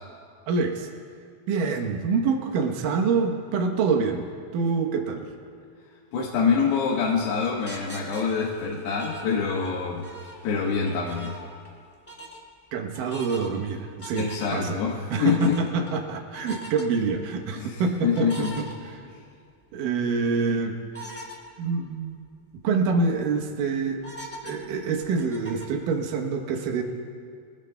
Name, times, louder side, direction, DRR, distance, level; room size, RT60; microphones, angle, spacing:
voice 1, 0.5-0.9 1.5-5.3 10.7-10.8 12.7-14.8 15.1-18.7 19.7-20.8 21.6-22.2 22.6-24.0 24.4-26.8, right 4 dB, 75° right, 2 dB, 2.0 m, -26 dB
voice 2, 6.1-10.1 10.4-11.4 14.2-15.6 17.6-18.6, left 6 dB, 75° left, -3 dB, 3.2 m, -26 dB
sound 1, 6.6-9.8 10.0-11.8 12.1-12.4 12.9-13.6 14.0-14.7 15.1-15.9 16.3-16.8 18.1-19.3 19.8-19.9 20.9-21.4 21.9-22.0 22.2-22.3 22.8-23.2 24.0-25.8, equal, 15° left, 0.4 m, -42 dB
24.5 x 16.5 x 2.3 m, 2.2 s
omnidirectional pair, 5.2 m